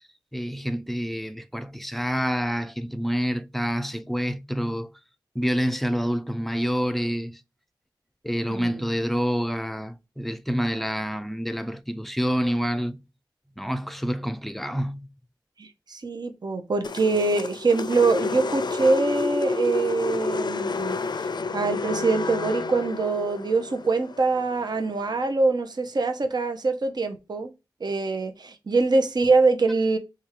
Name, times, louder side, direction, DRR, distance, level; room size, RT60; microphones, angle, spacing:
voice 1, 0.3-4.9 5.3-7.4 8.2-13.0 13.6-15.1, equal, ahead, 0.4 m, -27 dB
voice 2, 8.5-8.8 15.6-21.0 21.5-27.5 27.8-30.0, right 3 dB, 60° right, 0.6 m, -24 dB
sound 1, 16.8-25.1, left 4 dB, 65° left, 0.4 m, -30 dB
3.4 x 2.3 x 4.5 m
wide cardioid pair, 90°, 8 cm